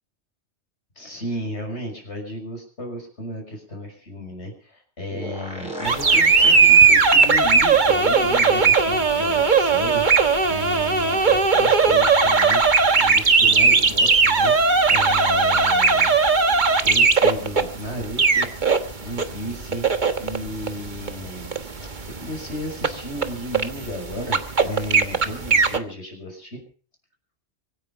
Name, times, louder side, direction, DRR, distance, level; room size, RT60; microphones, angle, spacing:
voice 1, 1.0-12.6 13.0-14.6 14.9-16.2 16.8-18.7 19.0-19.9 20.2-26.6, equal, 80° left, 2 dB, 6.4 m, -34 dB
sound 1, 5.1-9.7 10.0-10.1 10.3-10.4, equal, 5° right, 6.8 m, -38 dB
sound 2, 5.8-25.8, right 4 dB, 45° right, 1.4 m, -18 dB
24.5 x 10.0 x 5.5 m, 0.43 s
omnidirectional pair, 1.1 m